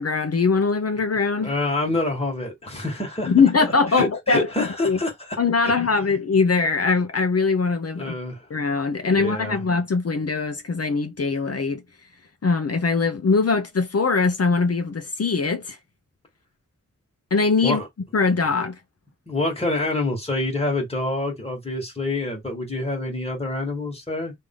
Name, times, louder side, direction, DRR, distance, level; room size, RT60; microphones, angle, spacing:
voice 1, 0.0-1.5 3.3-5.0 5.4-8.2 8.5-11.8 12.4-15.8 17.3-17.8 18.1-18.8, left 4 dB, 55° left, 0.7 m, -21 dB
voice 2, 1.4-3.3 3.9-5.7 8.0-8.5 8.9-9.6 17.6-17.9 19.3-24.3, left 2 dB, 20° left, 1.6 m, -27 dB
3.3 x 2.7 x 3.7 m
wide cardioid pair, 85°, 30 cm